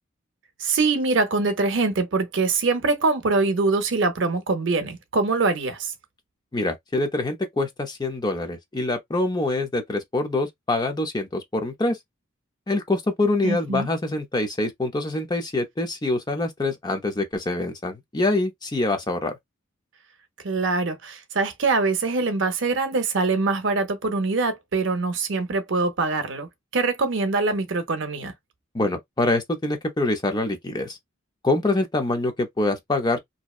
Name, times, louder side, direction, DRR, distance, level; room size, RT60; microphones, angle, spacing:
voice 1, 0.6-5.9 13.4-13.9 20.4-28.3, right 3 dB, 65° right, 0.6 m, -23 dB
voice 2, 6.5-12.0 12.7-19.4 28.7-31.0 31.4-33.2, left 2 dB, 20° left, 0.5 m, -25 dB
2.7 x 2.1 x 2.3 m
head